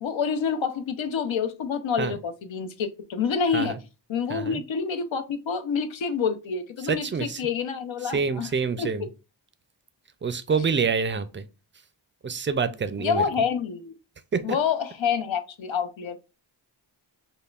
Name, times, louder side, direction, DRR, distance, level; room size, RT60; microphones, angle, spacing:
voice 1, 0.0-3.7 4.1-8.5 8.8-8.9 13.0-13.9 14.4-16.2, left 6 dB, 85° left, 0.7 m, -27 dB
voice 2, 4.3-4.6 6.8-7.4 8.0-9.1 10.2-11.4 12.2-13.2 14.3-14.6, right 5 dB, 30° right, 0.4 m, -27 dB
5.4 x 2.2 x 2.3 m
wide cardioid pair, 115°, 45 cm